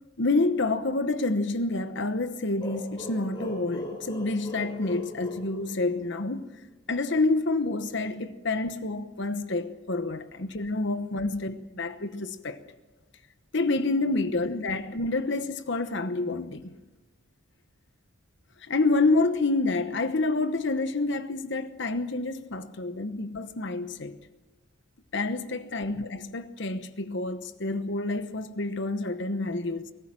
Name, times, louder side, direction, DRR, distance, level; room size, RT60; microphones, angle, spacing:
voice 1, 0.2-6.4 6.9-12.6 13.5-16.7 18.6-24.2 25.1-29.9, left 2 dB, 55° left, 1.0 m, -28 dB
sound 1, 2.6-6.3, left 1 dB, 20° left, 3.7 m, -39 dB
24.0 x 18.0 x 7.6 m
head